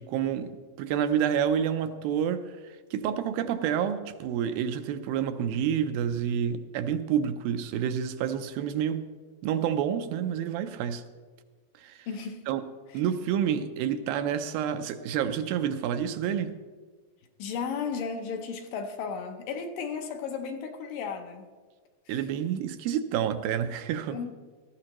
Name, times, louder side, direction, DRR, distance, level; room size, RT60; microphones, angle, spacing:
voice 1, 0.0-9.1 9.4-11.0 11.8-12.1 12.5-12.6 12.9-16.6 22.1-24.4, right 9 dB, 80° right, 9 dB, 2.4 m, -29 dB
voice 2, 12.1-12.4 17.4-21.5 24.1-24.4, left 6 dB, 75° left, 5 dB, 2.3 m, -34 dB
18.0 x 14.0 x 3.0 m, 1.5 s
omnidirectional pair, 4.2 m